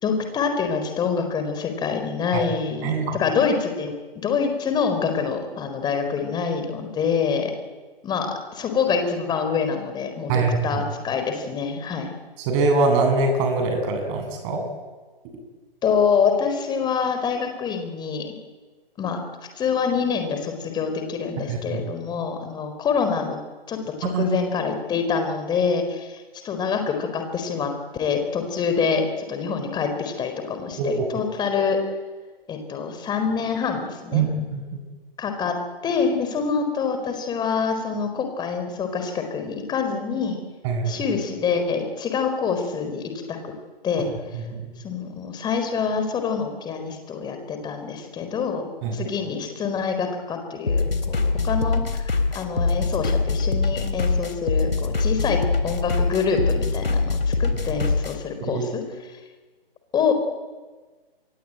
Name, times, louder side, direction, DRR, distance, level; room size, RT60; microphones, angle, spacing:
voice 1, 0.0-3.9 4.2-7.5 8.0-12.1 15.8-18.3 19.0-19.2 19.6-23.4 23.7-31.8 32.5-34.2 35.2-40.4 40.9-43.5 43.8-44.1 44.8-48.6 48.9-57.1 57.4-58.8 59.9-60.1, left 5 dB, 15° left, 6 dB, 4.3 m, -26 dB
voice 2, 2.8-3.2 10.3-10.8 12.5-14.6 21.5-21.8 24.1-24.4 30.8-31.0 34.1-34.8 40.6-41.0 44.3-44.7 48.8-49.0 58.5-58.7, right 3 dB, 30° right, 5 dB, 7.8 m, -23 dB
sound 1, 50.7-58.1, left 3 dB, 80° left, 3.8 m, -23 dB
26.5 x 23.5 x 9.0 m, 1.3 s
figure-of-eight pair, 130°, 29 cm